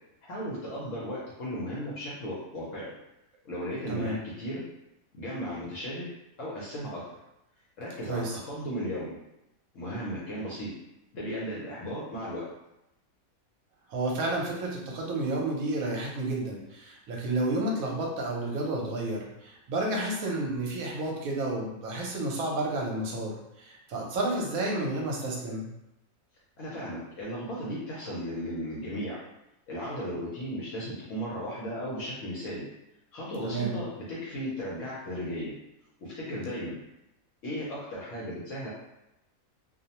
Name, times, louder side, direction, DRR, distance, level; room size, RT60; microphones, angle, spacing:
voice 1, 0.2-2.9 3.4-4.6 5.1-6.1 6.4-7.1 7.8-9.1 9.7-10.7 11.1-12.4 26.6-29.2 29.7-32.6 33.1-35.5 36.0-36.8 37.4-38.7, equal, 65° left, -6 dB, 0.9 m, -35 dB
voice 2, 8.1-8.4 13.9-25.7 33.4-33.8, right 2 dB, 80° right, -1 dB, 1.1 m, -31 dB
2.5 x 2.0 x 2.8 m, 0.87 s
omnidirectional pair, 1.5 m